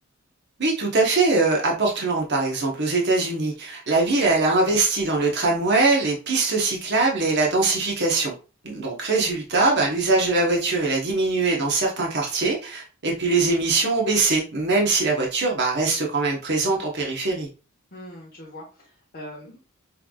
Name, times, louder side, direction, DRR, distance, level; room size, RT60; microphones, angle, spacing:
voice 1, 0.6-8.3 8.6-17.5, right 3 dB, 55° right, -1 dB, 1.1 m, -22 dB
voice 2, 17.9-19.6, left 1 dB, 45° left, -6 dB, 1.2 m, -41 dB
6.0 x 3.4 x 2.4 m, 0.34 s
head